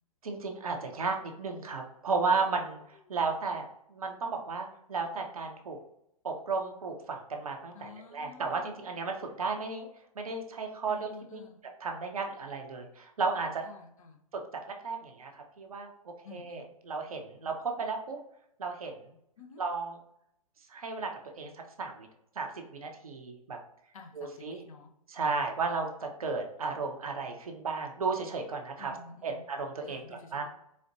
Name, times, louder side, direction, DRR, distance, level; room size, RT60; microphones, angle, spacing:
voice 1, 0.2-5.8 6.2-9.9 10.1-11.5 11.8-13.6 14.3-14.4 14.8-18.2 18.6-19.1 19.6-20.0 20.7-22.1 22.4-23.6 24.1-24.6 25.1-28.9 29.2-30.5, right 4 dB, 70° right, 3 dB, 0.7 m, -34 dB
voice 2, 7.7-8.7 10.9-11.6 13.6-14.2 16.2-16.7 19.4-19.6 23.9-24.9 28.8-29.4 29.9-30.5, left 5 dB, 65° left, 3 dB, 0.8 m, -50 dB
4.2 x 2.5 x 2.6 m, 0.78 s
figure-of-eight pair, 110°, 19 cm